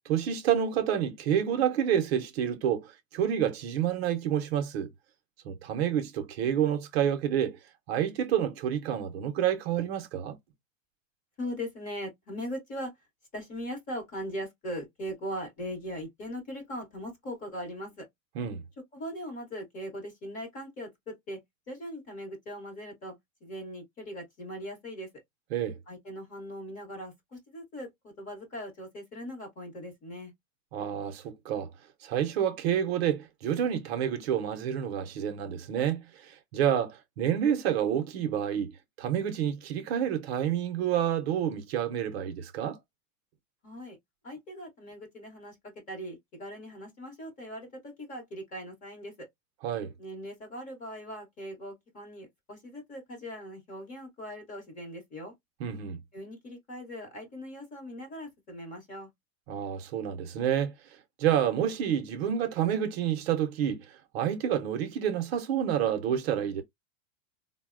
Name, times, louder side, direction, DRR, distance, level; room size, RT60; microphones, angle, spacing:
voice 1, 0.1-4.9 5.4-7.6 7.9-10.4 18.4-18.6 25.5-25.8 30.7-31.7 32.0-38.7 39.0-42.8 49.6-49.9 55.6-56.0 59.5-60.7 61.2-66.6, right 9 dB, 50° right, 0.6 m, -29 dB
voice 2, 11.4-12.9 13.3-18.0 18.9-21.4 21.7-23.1 23.4-25.1 25.9-27.9 28.2-30.3 43.6-44.0 44.2-49.3 50.0-55.3 56.1-59.1, equal, 20° left, 0.8 m, -40 dB
3.8 x 2.0 x 2.4 m
supercardioid pair, 160°, 41 cm